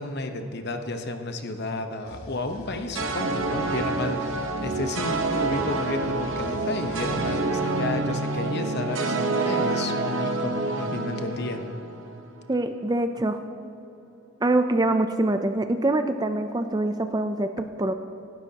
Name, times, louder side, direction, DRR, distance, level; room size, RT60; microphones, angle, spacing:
voice 1, 0.0-11.6, left 2 dB, 50° left, 6 dB, 0.9 m, -32 dB
sound 1, 2.0-7.4, left 1 dB, 85° left, 1.5 m, -43 dB
sound 2, 2.9-12.3, right 3 dB, 60° right, 1.0 m, -28 dB
voice 2, 12.5-13.5 14.4-17.9, right 2 dB, 20° right, 8 dB, 0.4 m, -24 dB
24.5 x 12.0 x 2.9 m, 2.7 s
head